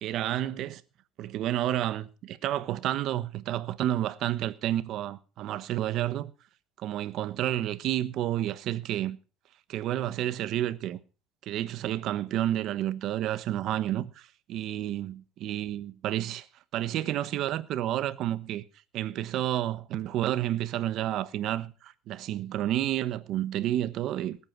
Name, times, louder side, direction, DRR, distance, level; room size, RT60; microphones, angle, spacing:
voice 1, 0.0-0.8 1.2-6.3 6.8-9.2 9.7-11.0 11.4-16.5 16.7-18.6 18.9-24.4, right 13 dB, 45° right, 1.2 m, -30 dB
19.0 x 8.5 x 6.0 m
cardioid pair, 160°, 0 cm